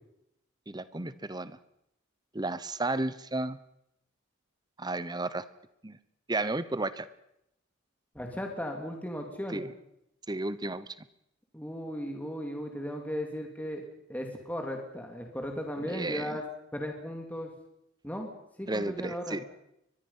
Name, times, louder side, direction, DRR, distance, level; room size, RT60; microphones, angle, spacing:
voice 1, 0.7-1.6 2.3-3.6 4.8-5.4 5.8-6.0 6.3-7.1 9.5-9.7 10.3-10.9 15.8-16.4 18.7-19.4, right 2 dB, 20° right, 15 dB, 0.9 m, -33 dB
voice 2, 8.1-9.7 11.5-16.4 16.7-17.5 18.0-18.3 18.6-19.4, equal, 10° left, 2 dB, 2.5 m, -36 dB
24.0 x 21.0 x 5.6 m, 0.79 s
head